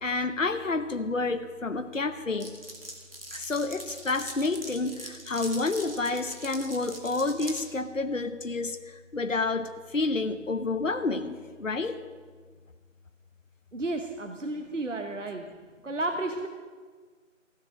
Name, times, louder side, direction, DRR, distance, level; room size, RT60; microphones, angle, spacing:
voice 1, 0.0-2.5 3.3-12.0, left 3 dB, 75° left, 9 dB, 1.0 m, -29 dB
Glass, 2.4-7.6, right 1 dB, 45° right, 2.2 m, -42 dB
voice 2, 13.7-15.5 15.8-16.5, right 2 dB, 70° right, 6 dB, 1.1 m, -32 dB
15.5 x 8.9 x 6.2 m, 1.5 s
figure-of-eight pair, 175°, 39 cm